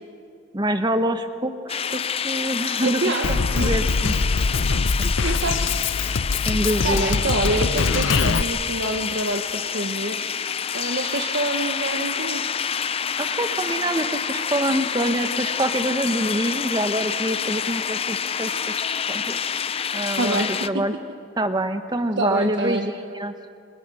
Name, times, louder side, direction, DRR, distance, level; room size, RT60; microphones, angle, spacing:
voice 1, 0.5-3.1 3.6-4.1 5.0-5.1 6.5-7.2 13.2-19.4 19.9-20.9 21.4-23.3, right 1 dB, 20° right, 8 dB, 1.3 m, -26 dB
sound 1, 1.7-20.7, left 7 dB, 30° left, 0.5 m, -28 dB
voice 2, 2.8-3.7 5.0-5.9 6.2-6.5 6.8-12.4 20.2-20.8 22.2-22.9, right 2 dB, 60° right, 3 dB, 1.4 m, -27 dB
Drum kit, 3.2-8.4, left 4 dB, 65° left, 0.7 m, -23 dB
28.0 x 26.0 x 6.4 m, 2.4 s
head